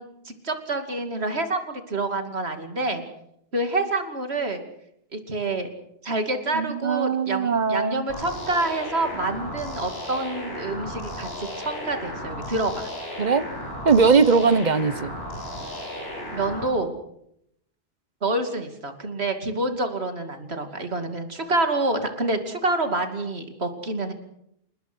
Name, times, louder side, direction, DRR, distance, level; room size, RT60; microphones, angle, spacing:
voice 1, 0.0-3.0 3.5-4.6 5.1-5.7 6.0-12.9 16.3-16.9 18.2-24.1, right 2 dB, 70° right, 6 dB, 2.9 m, -27 dB
voice 2, 6.5-8.1 13.2-13.5 13.8-15.1, right 5 dB, 45° right, 15 dB, 1.1 m, -20 dB
sound 1, 8.1-16.7, left 1 dB, 65° left, 6.8 m, -35 dB
28.0 x 20.5 x 6.2 m, 0.75 s
omnidirectional pair, 1.1 m